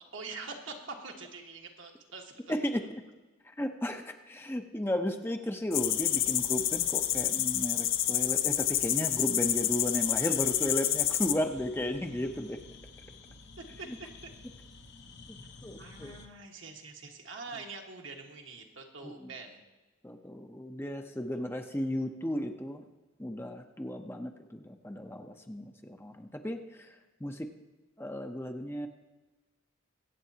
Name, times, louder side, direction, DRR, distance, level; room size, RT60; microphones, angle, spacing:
voice 1, 0.1-2.5 5.3-5.5 13.6-14.1 15.8-19.6 21.3-21.4, right 4 dB, 75° right, 1 dB, 1.5 m, -45 dB
voice 2, 2.5-2.8 3.6-12.6 15.6-16.1 19.0-19.3 20.0-22.8 23.2-26.9 27.2-27.5 28.0-28.9, left 1 dB, 10° left, 5 dB, 0.6 m, -34 dB
sound 1, 5.7-11.3, left 12 dB, 75° left, 0.6 m, -28 dB
sound 2, 5.7-16.3, left 3 dB, 55° left, 0.9 m, -51 dB
23.0 x 8.3 x 2.8 m, 1.2 s
head